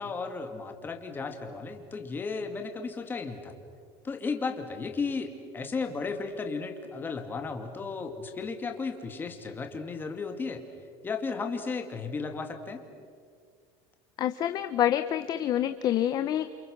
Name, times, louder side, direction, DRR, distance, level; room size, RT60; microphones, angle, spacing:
voice 1, 0.0-3.5 4.0-10.6 11.0-12.8, left 4 dB, 15° left, 4 dB, 2.4 m, -34 dB
voice 2, 14.2-16.5, left 11 dB, 35° left, 10 dB, 0.7 m, -27 dB
29.5 x 27.5 x 6.7 m, 2.1 s
cardioid pair, 160°, 12 cm